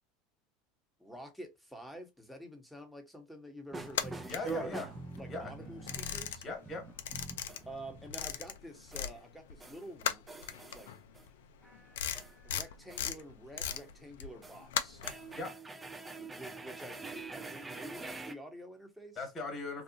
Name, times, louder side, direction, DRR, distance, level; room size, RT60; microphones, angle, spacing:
voice 1, 1.0-4.4 4.7-4.8 5.1-6.4 7.7-10.2 10.7-10.9 12.4-15.0 16.2-19.3, equal, ahead, 1.0 m, -48 dB
sound 1, 3.7-8.4 8.9-9.2 9.6-9.8 10.3-11.2 11.6-13.1 13.7-13.9 14.3-14.6 15.0-18.3, right 3 dB, 15° right, 0.5 m, -45 dB
sound 2, 3.9-5.2 5.5-6.7 6.9-9.2 9.5-15.4, left 9 dB, 80° left, 0.3 m, -38 dB
voice 2, 4.3-4.9 5.3-5.5 6.4-6.8 15.3-15.5 19.2-19.8, left 3 dB, 25° left, 1.3 m, -39 dB
2.7 x 2.3 x 2.5 m
hypercardioid pair, 90°, 0 cm